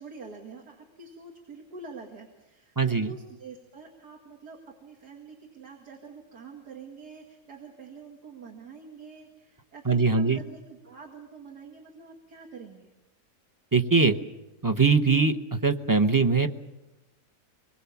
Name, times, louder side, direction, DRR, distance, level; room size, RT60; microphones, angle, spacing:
voice 1, 0.0-12.9, right 4 dB, 85° right, 1 dB, 2.7 m, -46 dB
voice 2, 2.8-3.1 9.9-10.4 13.7-14.2 14.6-16.5, right 4 dB, 20° right, 8 dB, 0.5 m, -22 dB
25.5 x 21.0 x 7.2 m, 1.0 s
omnidirectional pair, 1.7 m